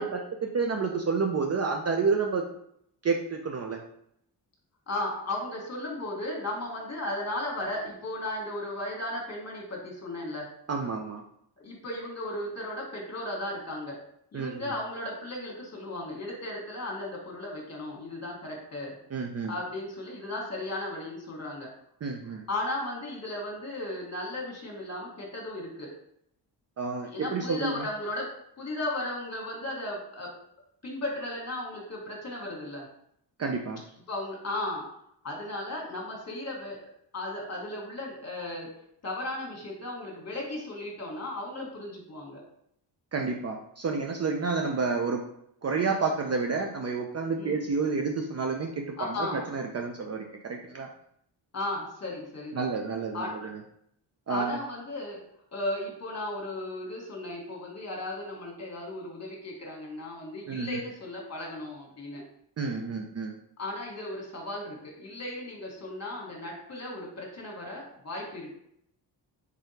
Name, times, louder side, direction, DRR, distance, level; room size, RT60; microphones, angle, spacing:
voice 1, 0.0-2.4 3.0-3.8 10.7-11.2 14.3-14.7 19.1-19.5 22.0-22.5 26.8-27.9 33.4-33.8 43.1-45.2 45.6-50.9 52.5-53.6 54.3-54.6 60.5-60.8 62.6-63.3, right 4 dB, 35° right, 2 dB, 0.5 m, -30 dB
voice 2, 4.9-10.5 11.6-14.0 14.3-18.9 19.5-21.7 22.5-25.9 27.1-30.3 30.8-32.9 34.1-34.8 35.2-36.8 37.1-38.7 39.0-42.4 47.4-47.6 49.0-49.5 51.5-52.7 53.1-53.3 54.3-55.2 55.5-62.2 63.6-68.5, left 1 dB, 35° left, -1 dB, 1.5 m, -35 dB
3.6 x 3.3 x 2.8 m, 0.71 s
cardioid pair, 70°, 44 cm